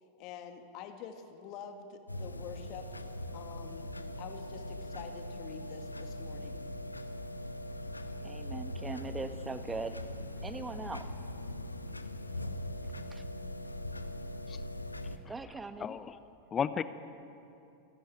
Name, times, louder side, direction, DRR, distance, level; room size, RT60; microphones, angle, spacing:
voice 1, 0.2-3.0 3.3-3.9 4.2-6.6, left 7 dB, 45° left, 5 dB, 2.1 m, -47 dB
sound 1, 2.1-15.2, left 1 dB, 90° left, 1.0 m, -41 dB
voice 2, 8.2-10.0 10.4-11.1 13.1-13.2 15.3-16.0, right 3 dB, 15° right, 10 dB, 1.3 m, -40 dB
voice 3, 15.8-16.2 16.5-16.8, left 7 dB, 25° left, 13 dB, 0.8 m, -33 dB
28.0 x 13.5 x 9.3 m, 2.8 s
figure-of-eight pair, 90°, 0 cm